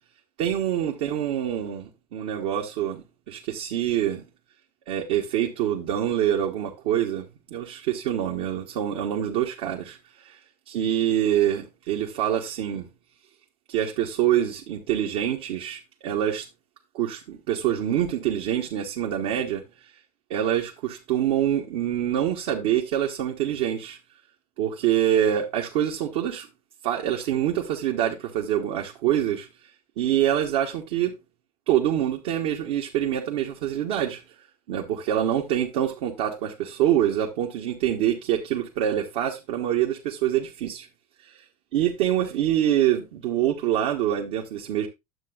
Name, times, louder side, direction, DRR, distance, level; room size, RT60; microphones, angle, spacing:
voice 1, 0.4-4.2 4.9-10.0 10.2-10.3 10.7-12.8 13.7-16.5 16.9-19.6 20.3-24.0 24.6-26.5 26.8-29.5 30.0-31.1 31.7-34.2 34.7-40.9 41.7-44.9, right 11 dB, 60° right, 1.3 m, -25 dB
11.0 x 7.6 x 2.4 m
figure-of-eight pair, 70°, 20 cm